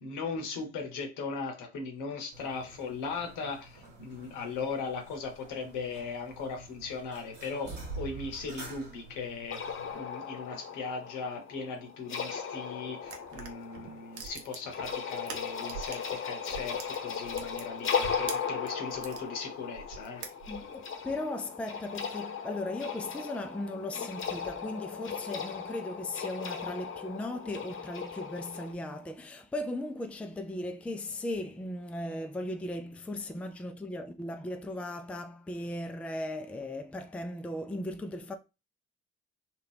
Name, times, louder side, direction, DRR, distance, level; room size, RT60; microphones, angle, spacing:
voice 1, 0.0-20.2, left 4 dB, 70° left, 1.0 m, -38 dB
sound 1, 2.3-10.0, right 3 dB, 75° right, 1.3 m, -47 dB
sound 2, 9.5-28.7, left 6 dB, 40° left, 0.9 m, -37 dB
sound 3, 13.0-16.2 16.5-19.2 19.7-20.8, right 7 dB, 60° right, 0.7 m, -44 dB
voice 2, 20.5-38.4, left 1 dB, 5° left, 0.4 m, -37 dB
2.7 x 2.3 x 3.4 m
hypercardioid pair, 45°, 32 cm